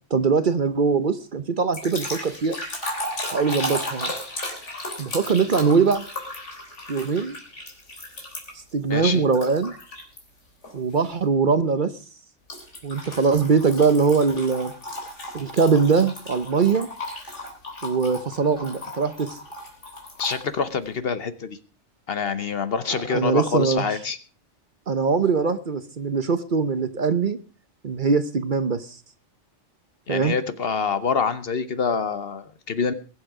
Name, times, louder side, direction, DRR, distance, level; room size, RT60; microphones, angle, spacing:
voice 1, 0.1-2.6 3.3-4.1 5.0-6.1 6.9-7.4 8.7-9.7 10.7-12.0 12.8-14.7 15.3-16.9 17.8-19.4 22.9-23.9 24.9-27.4 27.8-28.9 30.1-30.3, right 5 dB, 45° right, 0.9 m, -22 dB
sound 1, 1.7-8.7 9.3-10.2 10.6-10.9 12.5-20.4, left 1 dB, 80° left, 3.7 m, -35 dB
voice 2, 8.9-9.2 20.2-21.6 22.1-24.2 30.1-32.9, left 5 dB, 55° left, 1.2 m, -26 dB
21.5 x 7.9 x 4.8 m
omnidirectional pair, 1.2 m